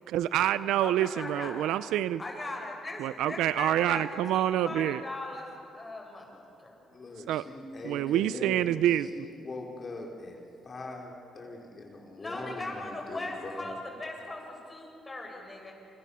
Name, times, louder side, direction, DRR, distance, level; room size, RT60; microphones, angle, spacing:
voice 1, 0.1-2.2 3.0-5.0 7.3-7.4 7.8-9.1, right 12 dB, 90° right, 15 dB, 0.5 m, -27 dB
voice 2, 0.8-1.7 2.2-5.5 5.7-6.3 6.6-6.7 12.2-15.7, left 2 dB, 20° left, 0 dB, 7.5 m, -39 dB
voice 3, 6.9-10.4 10.6-13.7, left 2 dB, 40° left, 0 dB, 3.8 m, -41 dB
30.0 x 29.0 x 7.0 m, 2.8 s
cardioid pair, 90°, 0 cm